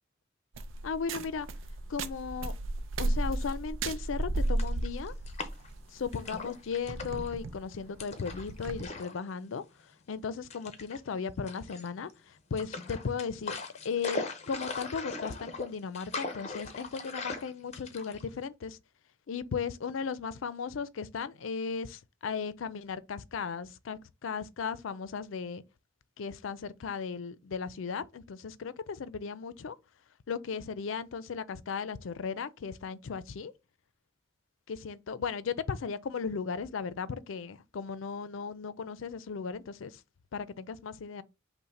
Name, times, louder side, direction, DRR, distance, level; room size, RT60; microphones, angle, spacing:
sound 1, 0.5-8.9, right 2 dB, 85° right, 0.5 m, -34 dB
voice 1, 0.8-1.5 1.9-2.5 3.0-5.1 5.9-9.6 10.1-13.6 13.8-18.8 19.3-25.6 26.2-29.8 30.3-33.5 34.7-40.0 40.3-41.2, left 5 dB, 85° left, 0.4 m, -36 dB
sound 2, 4.4-5.8 6.1-7.3 8.0-9.2 9.5-9.6 10.5-11.0 11.5-12.1 12.6-18.4, left 3 dB, 35° left, 0.6 m, -39 dB
5.6 x 2.1 x 4.1 m
head